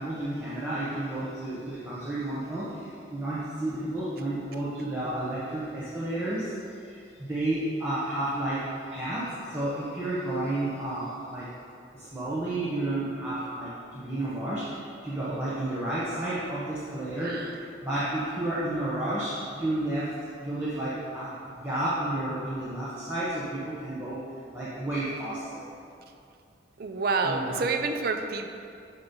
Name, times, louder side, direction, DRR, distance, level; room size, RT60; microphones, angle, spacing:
voice 1, 0.0-6.5 6.8-11.5 11.9-24.2 24.5-25.6 27.2-27.7, right 1 dB, 10° right, -10 dB, 1.0 m, -31 dB
voice 2, 17.2-17.5 26.8-28.5, right 4 dB, 55° right, 6 dB, 0.4 m, -28 dB
8.7 x 2.9 x 5.4 m, 2.4 s
head